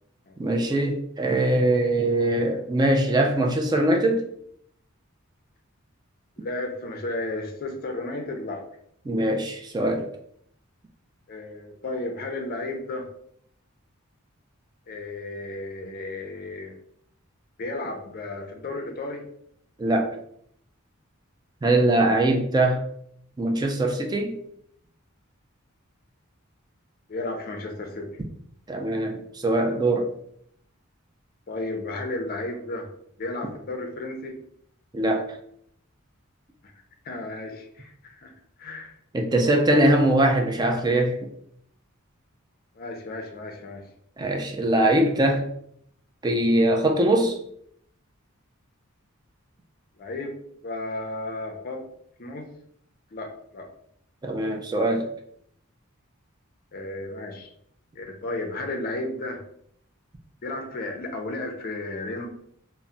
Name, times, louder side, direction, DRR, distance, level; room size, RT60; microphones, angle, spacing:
voice 1, 0.4-4.2 9.1-10.1 19.8-20.1 21.6-22.8 23.4-24.4 28.7-30.1 34.9-35.3 39.1-41.1 44.2-45.5 46.2-47.4 54.2-55.1, right 1 dB, 20° right, 2 dB, 0.3 m, -22 dB
voice 2, 6.4-8.6 11.3-13.1 14.9-16.7 17.6-19.3 27.1-28.1 31.5-32.9 33.2-34.4 37.0-38.3 38.6-38.9 42.7-43.9 50.0-50.3 50.6-51.8 52.2-52.5 53.1-53.7 56.7-57.5 58.0-59.4 60.4-62.3, left 2 dB, 45° left, 4 dB, 0.5 m, -33 dB
2.2 x 2.0 x 3.7 m, 0.69 s
head